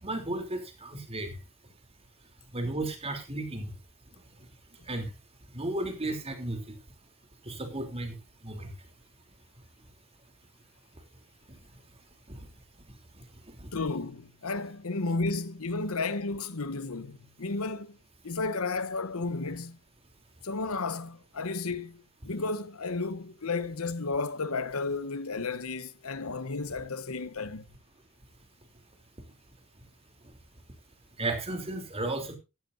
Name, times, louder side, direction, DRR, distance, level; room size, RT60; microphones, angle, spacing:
voice 1, 0.0-1.4 2.5-3.7 4.9-5.1 5.5-6.7 7.4-8.1 8.4-8.7 12.3-12.4 13.6-13.7 31.2-32.4, right 2 dB, 25° right, 3.4 m, -34 dB
voice 2, 13.7-18.0 18.2-19.8 20.4-27.6, left 3 dB, 70° left, 1.0 m, -33 dB
15.5 x 12.5 x 2.7 m
head